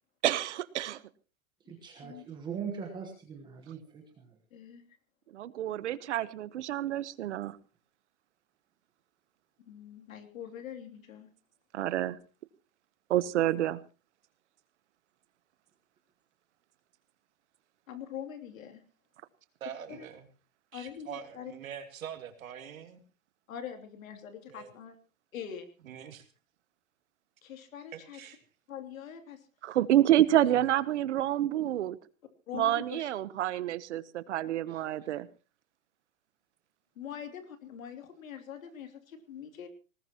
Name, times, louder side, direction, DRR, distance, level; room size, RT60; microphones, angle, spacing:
voice 1, 0.2-1.0 5.3-7.6 11.7-12.2 13.1-13.8 29.6-32.0 32.5-35.3, right 12 dB, 60° right, 17 dB, 1.0 m, -28 dB
voice 2, 1.7-4.3, right 7 dB, 10° right, 3 dB, 1.3 m, -41 dB
voice 3, 4.5-4.8 9.6-11.3 17.9-18.8 19.9-20.0 20.7-21.5 23.5-24.9 25.3-25.7 27.4-28.2 28.7-29.5 32.5-33.1 36.9-39.7, left 9 dB, 80° left, 8 dB, 3.0 m, -43 dB
voice 4, 19.6-20.3 20.7-23.0 24.5-24.7 25.8-26.2 27.9-28.4 30.5-30.6 34.7-35.1, right 8 dB, 80° right, 6 dB, 3.1 m, -44 dB
20.5 x 19.0 x 3.0 m, 0.34 s
supercardioid pair, 175°, 40 cm